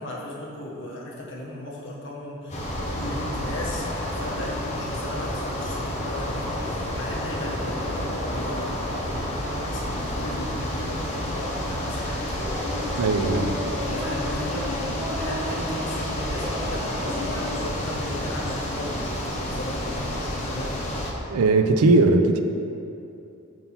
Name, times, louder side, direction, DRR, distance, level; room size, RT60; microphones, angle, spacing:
voice 1, 0.0-12.2 13.8-20.8, left 1 dB, 55° left, -4 dB, 1.2 m, -36 dB
sound 1, 2.5-21.1, left 1 dB, 30° left, 0.8 m, -30 dB
sound 2, 11.5-17.7, left 1 dB, 10° right, 0.7 m, -34 dB
voice 2, 13.0-13.5 21.3-22.4, right 3 dB, 90° right, 6 dB, 0.4 m, -19 dB
5.5 x 3.7 x 5.8 m, 2.7 s
head